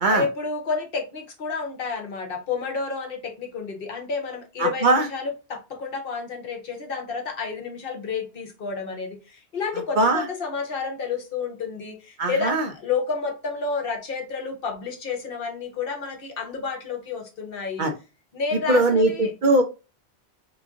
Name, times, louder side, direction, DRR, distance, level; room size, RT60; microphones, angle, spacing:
voice 1, 0.1-17.9 18.3-19.3, left 5 dB, 60° left, 3 dB, 1.0 m, -30 dB
voice 2, 4.6-5.0 10.0-10.2 12.2-12.6 17.8-17.9 18.7-19.6, right 2 dB, 55° right, 4 dB, 0.6 m, -20 dB
3.1 x 2.5 x 3.5 m, 0.30 s
omnidirectional pair, 1.1 m